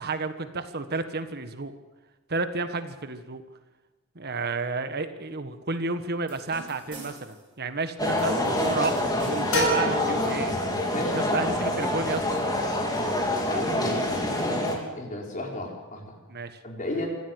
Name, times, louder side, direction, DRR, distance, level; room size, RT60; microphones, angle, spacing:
voice 1, 0.0-1.7 2.3-3.4 4.1-10.5 11.1-12.2 16.3-16.6, right 3 dB, 45° right, 10 dB, 1.4 m, -31 dB
sound 1, 6.3-7.4 8.1-9.6, right 2 dB, 25° right, 6.0 m, -44 dB
sound 2, 8.0-14.8, left 1 dB, 20° left, 3.5 m, -26 dB
sound 3, 9.5-11.3, equal, 60° left, 6.1 m, -29 dB
voice 2, 10.9-11.4 13.4-14.3 15.0-16.2 16.6-17.1, left 1 dB, 35° left, 0 dB, 5.0 m, -34 dB
25.5 x 15.5 x 8.1 m, 1.2 s
head